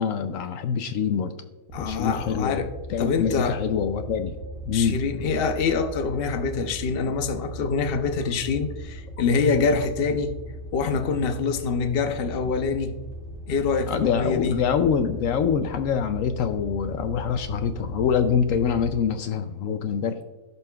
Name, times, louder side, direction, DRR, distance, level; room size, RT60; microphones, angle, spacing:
voice 1, 0.0-1.3 1.8-4.4 4.7-5.0 13.9-20.2, left 7 dB, 75° left, 0.9 m, -25 dB
voice 2, 1.7-2.7 3.0-3.6 4.7-10.3 10.7-12.9 13.5-14.6, left 5 dB, 50° left, 0.9 m, -25 dB
sound 1, 1.7-18.9, equal, 45° right, 1.0 m, -38 dB
16.5 x 5.6 x 2.3 m
omnidirectional pair, 1.5 m